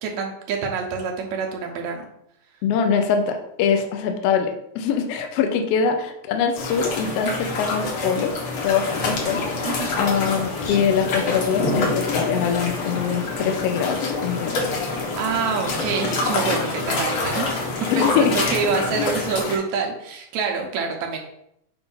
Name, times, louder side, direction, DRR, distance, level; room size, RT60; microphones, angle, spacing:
voice 1, 0.0-2.0 9.6-9.9 15.2-21.2, right 5 dB, 75° right, 2 dB, 2.2 m, -26 dB
voice 2, 2.6-8.3 8.6-9.4 10.0-14.7 17.9-18.8, left 6 dB, 70° left, 5 dB, 1.6 m, -23 dB
sound 1, 6.5-19.6, left 3 dB, 55° left, 1.7 m, -26 dB
7.1 x 2.6 x 5.5 m, 0.76 s
omnidirectional pair, 3.4 m